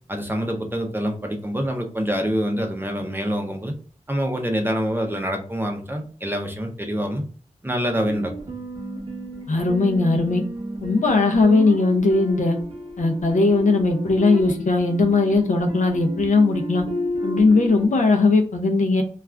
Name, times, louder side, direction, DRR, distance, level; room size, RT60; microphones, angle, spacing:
voice 1, 0.1-3.7 4.1-7.2 7.6-8.6, equal, 15° right, 3 dB, 0.5 m, -26 dB
sound 1, 8.0-17.9, equal, 45° right, 0.8 m, -32 dB
voice 2, 9.5-10.4 10.8-12.6 13.0-16.8 17.2-19.0, left 3 dB, 75° left, 4 dB, 0.5 m, -19 dB
2.4 x 2.3 x 3.2 m, 0.43 s
wide cardioid pair, 100°, 13 cm